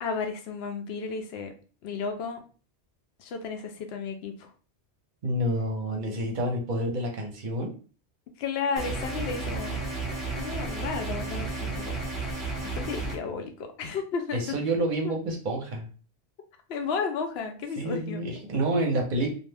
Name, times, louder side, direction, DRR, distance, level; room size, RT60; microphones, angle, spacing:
voice 1, 0.0-1.5 1.8-2.4 3.2-4.5 8.4-9.9 10.3-12.0 12.6-14.6 15.0-15.2 16.7-18.2, left 5 dB, 70° left, 5 dB, 0.8 m, -33 dB
voice 2, 5.2-7.7 14.3-15.9 17.8-19.3, right 1 dB, 55° right, 2 dB, 0.7 m, -28 dB
sound 1, 8.8-13.2, right 3 dB, ahead, 0.9 m, -32 dB
2.5 x 2.0 x 3.2 m, 0.38 s
omnidirectional pair, 1.1 m